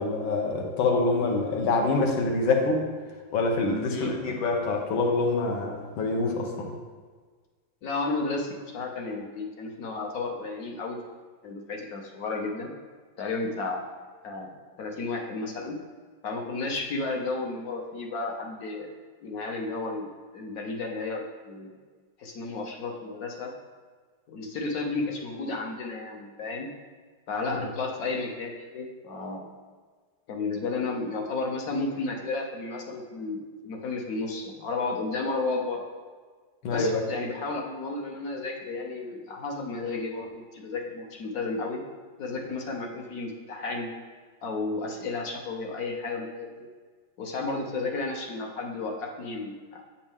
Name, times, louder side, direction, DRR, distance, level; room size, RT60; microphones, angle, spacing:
voice 1, 0.0-2.8 3.3-6.7 27.6-27.7 36.6-37.0, left 3 dB, 80° left, 1 dB, 1.7 m, -25 dB
voice 2, 7.8-11.0 11.4-12.7 13.2-13.9 14.2-15.8 16.2-18.9 19.2-21.7 22.2-23.5 24.3-26.7 27.3-29.5 30.3-35.8 36.7-41.8 42.2-43.9 44.4-46.7 47.2-49.8, left 3 dB, 60° left, 1 dB, 1.0 m, -32 dB
8.1 x 5.3 x 3.5 m, 1.5 s
omnidirectional pair, 2.1 m